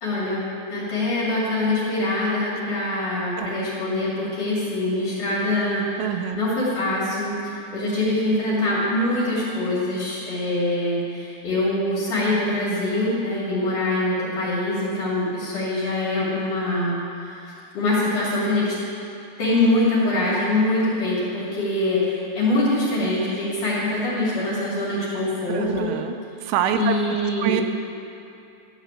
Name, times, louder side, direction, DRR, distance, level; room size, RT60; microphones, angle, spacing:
voice 1, 0.0-0.5 0.7-5.8 6.3-18.8 19.4-25.9 26.7-27.6, left 1 dB, 45° left, -7 dB, 3.6 m, -24 dB
voice 2, 6.0-6.4 25.5-26.1 26.4-27.6, right 9 dB, 85° right, 7 dB, 2.9 m, -26 dB
13.5 x 4.8 x 8.3 m, 2.6 s
omnidirectional pair, 5.5 m